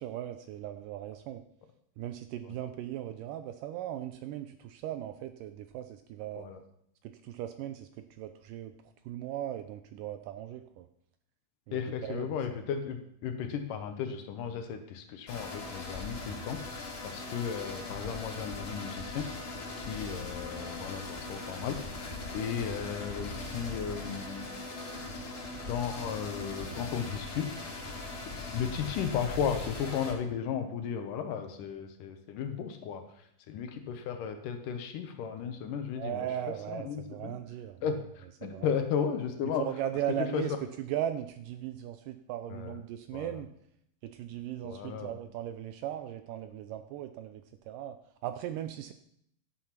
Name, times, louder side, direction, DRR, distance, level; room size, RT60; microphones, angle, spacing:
voice 1, 0.0-1.4 2.0-6.5 7.0-8.7 9.1-10.9 11.7-12.3 36.0-38.0 38.4-38.7 39.7-43.5 44.0-48.0 48.2-48.9, right 11 dB, 80° right, 9 dB, 2.0 m, -38 dB
voice 2, 11.7-24.5 25.7-27.5 28.5-37.3 37.8-39.7 40.2-40.4 42.5-42.8 43.1-43.4 44.6-45.1, left 7 dB, 70° left, 7 dB, 2.3 m, -35 dB
sound 1, 15.3-30.1, left 2 dB, 45° left, 2.9 m, -40 dB
11.5 x 7.8 x 5.9 m, 0.72 s
omnidirectional pair, 4.2 m